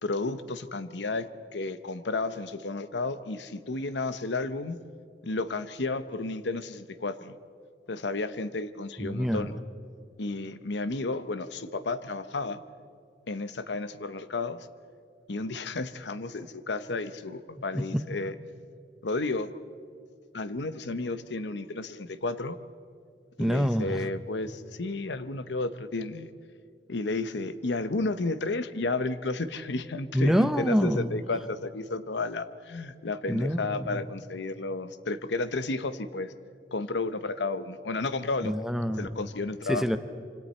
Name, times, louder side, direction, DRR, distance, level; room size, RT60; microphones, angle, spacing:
voice 1, 0.0-4.8 5.2-7.4 7.9-9.6 10.2-12.6 13.3-14.6 15.3-18.3 19.0-19.5 20.3-22.6 23.4-26.3 26.9-36.3 36.7-38.5 39.0-39.9, left 3 dB, 80° left, 12 dB, 0.8 m, -32 dB
voice 2, 9.0-9.5 17.7-18.0 23.4-24.0 30.1-31.2 33.3-34.0 38.4-39.1 39.7-40.0, equal, ahead, 9 dB, 0.7 m, -26 dB
26.0 x 26.0 x 4.4 m, 2.3 s
head